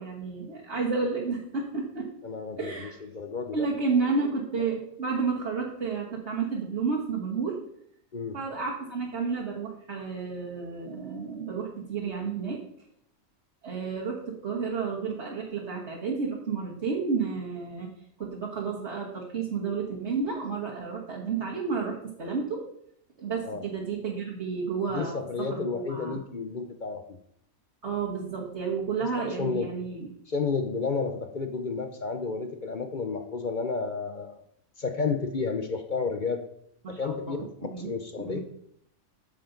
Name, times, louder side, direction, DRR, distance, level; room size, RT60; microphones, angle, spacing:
voice 1, 0.0-2.1 2.6-3.0 3.5-7.6 8.3-12.6 13.6-17.9 18.2-22.6 23.2-26.2 27.8-30.1 36.8-37.9 38.2-38.4, right 5 dB, 50° right, -5 dB, 1.7 m, -31 dB
voice 2, 2.2-3.7 8.1-8.4 23.4-23.6 24.9-27.2 29.4-29.7 30.3-34.4 34.8-36.4 37.0-37.5 37.8-38.4, left 4 dB, 45° left, 6 dB, 0.7 m, -31 dB
8.8 x 7.6 x 3.9 m, 0.70 s
omnidirectional pair, 1.5 m